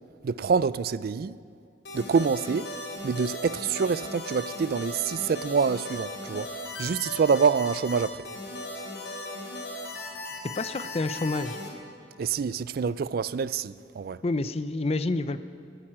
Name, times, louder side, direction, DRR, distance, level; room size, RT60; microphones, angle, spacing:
voice 1, 0.2-1.4 1.9-2.7 3.0-6.5 6.8-8.2 12.2-14.2, right 5 dB, 55° right, 0.4 m, -26 dB
sound 1, 1.8-11.7, left 1 dB, 75° left, 3.9 m, -37 dB
voice 2, 10.6-11.6 14.2-15.4, left 3 dB, 35° left, 0.5 m, -28 dB
18.5 x 9.0 x 8.7 m
head